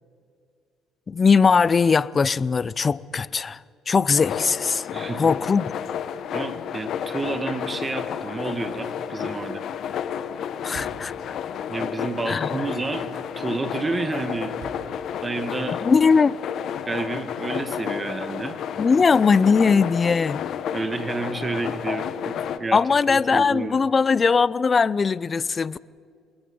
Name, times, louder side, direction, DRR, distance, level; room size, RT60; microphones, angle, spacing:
voice 1, 1.1-4.9 5.2-5.7 10.6-11.3 12.3-12.6 15.8-16.3 18.8-20.5 22.7-25.8, left 5 dB, 30° left, 20 dB, 0.6 m, -20 dB
sound 1, 4.2-22.6, left 8 dB, 60° left, 1.2 m, -31 dB
voice 2, 4.9-5.3 6.3-9.6 11.7-13.1 13.4-14.7 15.2-15.8 16.9-18.6 20.7-23.9, right 3 dB, 25° right, 9 dB, 2.0 m, -30 dB
Drawer open or close, 8.4-11.7 12.6-13.5 13.9-14.9 15.2-15.3, right 4 dB, 60° right, 3.7 m, -48 dB
27.5 x 21.0 x 5.5 m, 2.3 s
cardioid pair, 90°, 0 cm